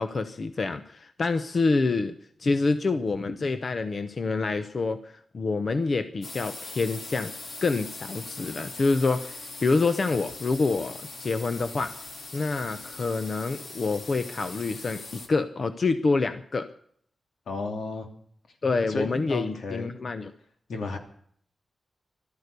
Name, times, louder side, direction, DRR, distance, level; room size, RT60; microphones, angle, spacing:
voice 1, 0.0-2.1 2.4-7.3 7.6-12.0 12.3-16.7 18.6-20.3, left 3 dB, 45° left, 10 dB, 0.8 m, -27 dB
sound 1, 6.2-15.3, left 3 dB, 60° left, 2.8 m, -41 dB
voice 2, 17.5-18.1 18.9-20.0 20.7-21.0, left 3 dB, 85° left, 5 dB, 2.8 m, -33 dB
15.0 x 13.0 x 6.8 m, 0.63 s
wide cardioid pair, 165°, 0 cm